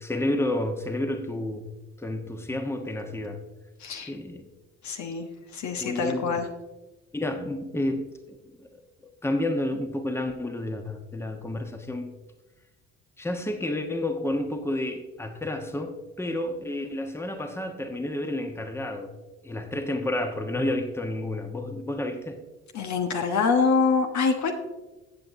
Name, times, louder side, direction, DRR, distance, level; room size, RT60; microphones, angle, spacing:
voice 1, 0.0-1.7 2.0-3.4 4.0-4.4 5.8-6.4 7.1-8.7 9.0-12.1 13.2-19.1 19.4-22.4, left 1 dB, 5° left, 5 dB, 1.2 m, -30 dB
voice 2, 3.8-4.1 4.8-5.3 5.5-6.5 22.7-24.5, left 5 dB, 50° left, 5 dB, 1.2 m, -25 dB
15.0 x 7.9 x 2.7 m, 1.1 s
figure-of-eight pair, 50°, 36 cm